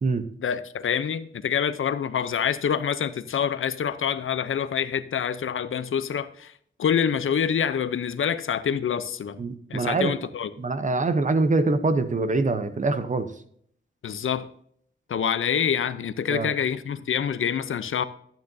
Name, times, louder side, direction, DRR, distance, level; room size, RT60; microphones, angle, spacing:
voice 1, 0.4-6.5 6.8-9.4 9.7-10.5 14.0-14.5 15.1-18.0, left 8 dB, 75° left, 13 dB, 0.6 m, -26 dB
voice 2, 9.4-10.1 10.6-13.3 16.3-16.5, right 3 dB, 35° right, 10 dB, 0.8 m, -24 dB
11.5 x 9.1 x 2.7 m, 0.63 s
wide cardioid pair, 150°, 21 cm